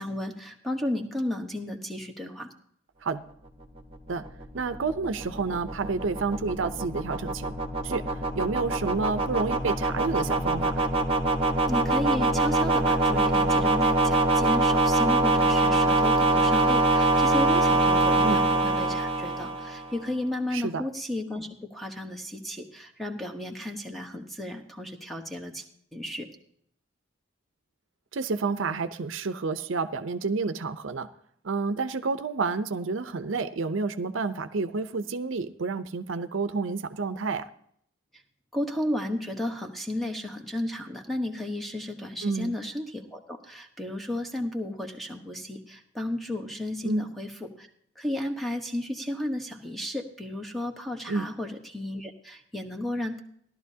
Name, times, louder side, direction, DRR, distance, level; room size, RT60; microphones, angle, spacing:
voice 1, 0.0-2.5 11.7-25.7 25.9-26.3 38.1-38.2 38.5-47.7 48.0-53.2, left 1 dB, ahead, 4 dB, 1.0 m, -33 dB
sound 1, 3.8-19.9, right 2 dB, 30° right, 1.0 m, -24 dB
voice 2, 4.5-7.5 7.8-10.9 18.2-18.4 20.5-20.8 28.1-31.1 31.4-37.5 42.2-42.5 46.8-47.1 51.1-51.3, right 4 dB, 75° right, 11 dB, 0.6 m, -30 dB
16.0 x 12.0 x 2.8 m, 0.67 s
head